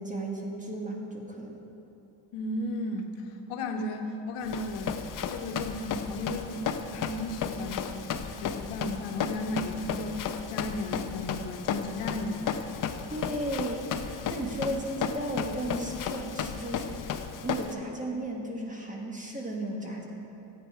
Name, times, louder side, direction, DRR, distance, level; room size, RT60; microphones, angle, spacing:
voice 1, 0.0-1.6 13.0-20.1, right 1 dB, 15° right, -1 dB, 1.4 m, -35 dB
voice 2, 2.3-5.0 5.3-12.8, left 1 dB, 85° left, 3 dB, 1.2 m, -35 dB
Run, 4.5-17.7, left 7 dB, 40° left, 0.6 m, -34 dB
13.0 x 8.7 x 4.7 m, 2.9 s
cardioid pair, 145°, 50 cm